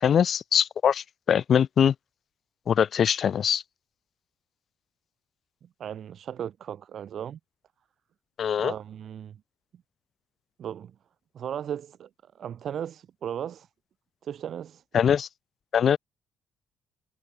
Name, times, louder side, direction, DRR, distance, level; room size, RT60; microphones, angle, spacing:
voice 1, 0.0-1.9 2.7-3.6 8.4-8.7 14.9-15.3 15.7-16.0, left 8 dB, 50° left, 0.8 m, -22 dB
voice 2, 5.8-7.4 8.6-9.4 10.6-10.9 11.3-12.1 12.4-13.7 14.2-14.8, right 9 dB, 55° right, 1.5 m, -36 dB
cardioid pair, 120°, 0 cm